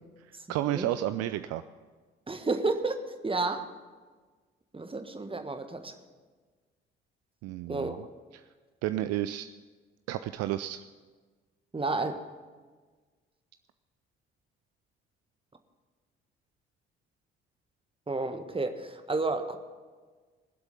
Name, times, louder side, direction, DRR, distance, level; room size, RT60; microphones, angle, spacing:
voice 1, 0.3-1.6 7.4-8.0 8.3-8.4 8.8-9.5 10.1-10.8, right 13 dB, 55° right, 12 dB, 0.5 m, -32 dB
voice 2, 2.3-3.7 4.7-5.9 7.7-8.0 11.7-12.2 18.1-19.6, right 3 dB, 15° right, 8 dB, 1.4 m, -31 dB
20.5 x 8.0 x 6.8 m, 1.4 s
figure-of-eight pair, 45°, 30 cm